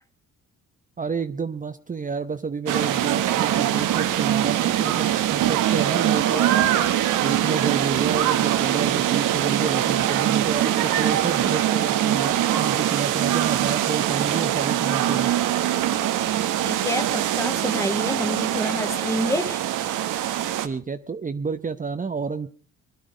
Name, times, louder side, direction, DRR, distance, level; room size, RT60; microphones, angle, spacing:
voice 1, 1.0-6.5 7.2-15.3 20.6-22.5, right 5 dB, 25° right, 8 dB, 0.9 m, -30 dB
sound 1, 2.7-20.7, right 12 dB, 90° right, 1.2 m, -23 dB
voice 2, 16.6-19.6, left 1 dB, 10° left, 8 dB, 1.7 m, -28 dB
22.0 x 11.5 x 5.2 m, 0.43 s
cardioid pair, 90°, 30 cm